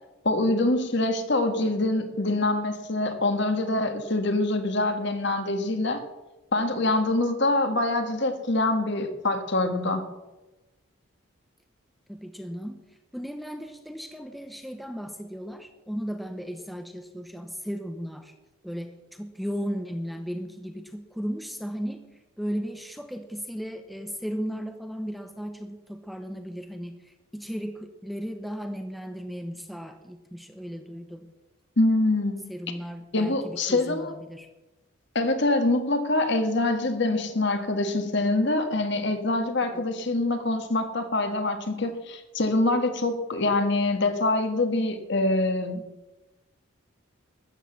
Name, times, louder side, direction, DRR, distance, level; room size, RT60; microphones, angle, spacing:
voice 1, 0.2-6.0 6.5-10.0 31.8-32.5 33.1-34.1 35.2-45.8, left 2 dB, 55° left, 7 dB, 1.6 m, -25 dB
voice 2, 12.1-18.3 18.6-22.1 22.4-31.3 32.5-34.5 39.7-39.8, equal, ahead, 6 dB, 0.9 m, -36 dB
13.5 x 9.8 x 7.1 m, 1.1 s
head